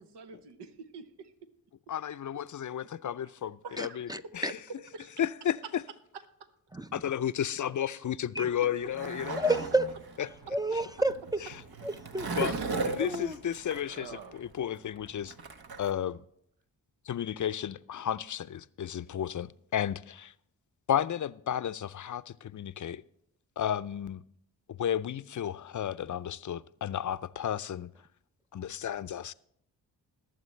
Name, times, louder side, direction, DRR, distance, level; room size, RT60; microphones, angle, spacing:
voice 1, 0.0-1.3 3.6-4.0 4.9-5.1 8.6-8.7 12.3-12.7 13.8-14.4, right 5 dB, 85° right, 1.0 m, -46 dB
voice 2, 1.9-4.6 5.2-5.8 6.9-9.4 10.2-10.3 10.7-10.8 12.3-12.5 12.8-15.3 15.8-16.2 17.1-20.3 20.9-23.0 23.6-24.2 24.7-27.9 28.5-29.3, left 10 dB, 50° left, 0.5 m, -33 dB
voice 3, 3.8-4.5 6.7-6.9 8.4-8.5 9.4-9.9 10.5-11.1 11.8-12.5 13.0-13.4, right 1 dB, 10° right, 0.5 m, -30 dB
Skateboard, 8.4-15.9, right 3 dB, 65° right, 1.1 m, -38 dB
20.5 x 7.5 x 3.2 m
supercardioid pair, 45°, 40 cm